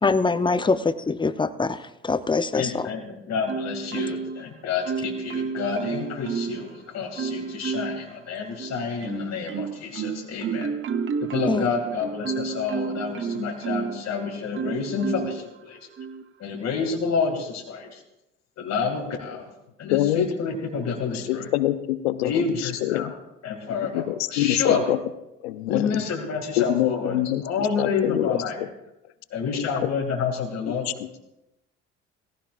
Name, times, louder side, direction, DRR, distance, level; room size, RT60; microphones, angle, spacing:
voice 1, 0.0-0.8 1.1-2.9 11.5-11.7, left 4 dB, 15° left, 12 dB, 0.8 m, -23 dB
voice 2, 2.5-10.7 11.2-15.8 16.4-18.0 18.6-19.5 19.8-21.5 22.2-23.1 23.4-24.0 24.3-24.9 25.7-28.6 29.3-30.9, left 5 dB, 55° left, 0 dB, 2.6 m, -29 dB
Marimba xylophone, 3.5-4.4 4.9-6.7 7.2-8.1 8.6-14.0 14.5-15.4 16.0-16.2, right 5 dB, 40° right, 1.0 m, -30 dB
voice 3, 19.9-20.3 21.1-23.1 23.9-25.0 25.4-26.0 26.6-28.7 29.5-29.9 30.9-31.2, left 14 dB, 90° left, 13 dB, 0.7 m, -25 dB
17.5 x 15.5 x 2.5 m, 0.91 s
hypercardioid pair, 65°, 31 cm